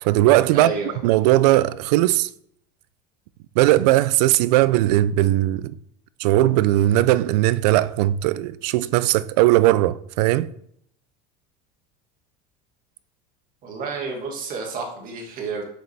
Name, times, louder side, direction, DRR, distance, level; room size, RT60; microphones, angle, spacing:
voice 1, 0.0-0.7 1.0-2.3 3.6-5.8 6.2-10.5, right 15 dB, 85° right, 0.4 m, -18 dB
voice 2, 0.5-1.0 13.6-15.6, right 4 dB, 45° right, 2.1 m, -30 dB
7.0 x 6.2 x 3.5 m
cardioid pair, 140°, 20 cm